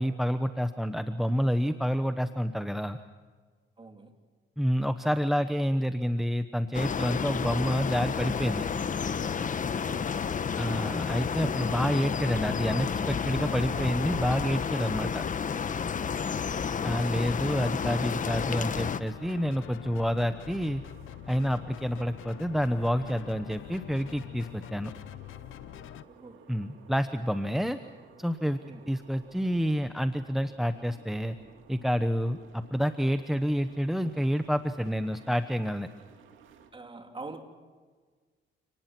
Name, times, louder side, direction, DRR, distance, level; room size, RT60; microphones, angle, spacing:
voice 1, 0.0-3.0 4.6-8.7 10.6-15.2 16.8-20.8 21.3-24.9 26.5-27.8 28.2-28.6 28.9-31.4 31.7-35.9, equal, ahead, 9 dB, 1.0 m, -28 dB
voice 2, 3.8-4.1 9.8-10.2 16.2-16.6 26.1-26.5 28.6-28.9 36.7-37.4, right 3 dB, 25° right, 5 dB, 3.4 m, -45 dB
sound 1, 6.7-19.0, left 6 dB, 40° left, 1.1 m, -31 dB
sound 2, 18.2-26.0, left 13 dB, 80° left, 0.9 m, -45 dB
sound 3, 19.0-36.7, right 6 dB, 80° right, 2.8 m, -56 dB
29.0 x 19.0 x 6.1 m, 1.5 s
cardioid pair, 90°, 20 cm